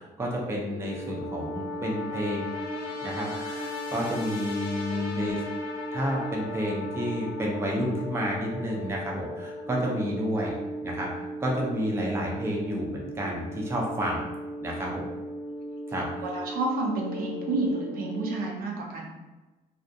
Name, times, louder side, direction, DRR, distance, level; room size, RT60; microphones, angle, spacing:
voice 1, 0.0-2.4 3.0-5.4 5.9-10.5 10.8-14.2 14.6-15.0 15.9-16.1, equal, 15° right, -2 dB, 0.5 m, -30 dB
sound 1, 0.7-18.3, left 1 dB, 70° left, 0.7 m, -36 dB
voice 2, 16.2-19.1, right 3 dB, 60° right, -1 dB, 0.6 m, -30 dB
2.4 x 2.0 x 2.6 m, 1.1 s
cardioid pair, 110°, 17 cm